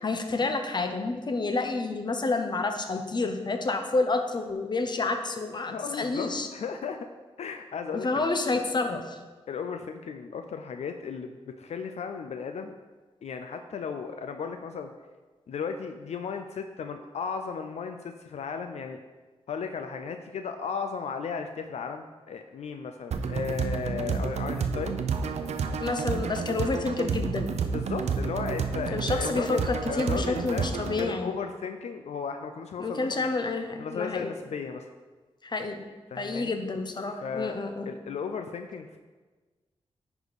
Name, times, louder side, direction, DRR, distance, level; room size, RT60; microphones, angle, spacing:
voice 1, 0.0-6.5 7.9-9.2 25.8-27.5 28.9-31.4 32.8-34.3 35.4-35.8 36.2-37.9, left 3 dB, 40° left, 6 dB, 0.9 m, -29 dB
voice 2, 5.7-7.1 7.4-8.6 9.5-12.8 13.2-14.9 15.5-19.0 19.5-25.0 27.6-33.3 33.8-34.9 36.1-36.5 37.2-37.6 37.9-39.0, left 6 dB, 80° left, 6 dB, 0.5 m, -35 dB
sound 1, 23.1-31.1, right 5 dB, 80° right, 0.6 m, -30 dB
9.9 x 5.0 x 4.1 m, 1.3 s
wide cardioid pair, 85°, 11 cm